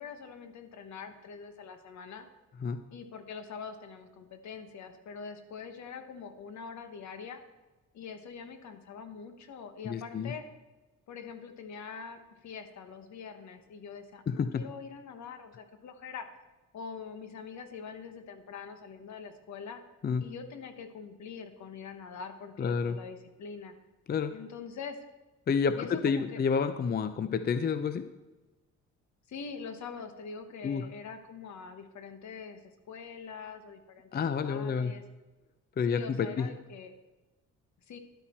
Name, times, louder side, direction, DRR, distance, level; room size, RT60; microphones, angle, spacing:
voice 1, 0.0-2.3 2.9-7.4 7.9-10.4 11.1-16.3 16.7-19.8 20.2-23.7 24.3-25.0 25.8-26.4 29.3-35.0 35.9-36.9 37.9-38.0, left 6 dB, 65° left, 8 dB, 1.3 m, -44 dB
voice 2, 9.8-10.3 14.3-14.6 20.0-20.2 22.6-23.0 24.1-24.3 25.5-28.1 30.6-30.9 34.1-34.9 35.8-36.5, left 6 dB, 35° left, 11 dB, 0.5 m, -29 dB
11.5 x 8.4 x 4.5 m, 1.1 s
cardioid pair, 90°, 30 cm